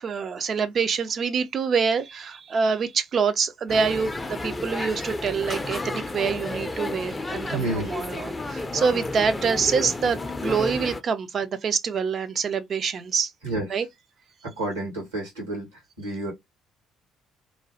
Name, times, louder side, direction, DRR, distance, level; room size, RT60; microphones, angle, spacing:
voice 1, 0.0-13.3 13.7-13.9, right 5 dB, 45° right, 0.5 m, -26 dB
sound 1, 3.7-11.0, left 2 dB, 20° left, 0.5 m, -31 dB
voice 2, 7.5-7.9 13.4-13.7 14.4-16.3, right 2 dB, 75° right, 1.7 m, -30 dB
3.0 x 2.2 x 2.8 m
figure-of-eight pair, 50°, 0 cm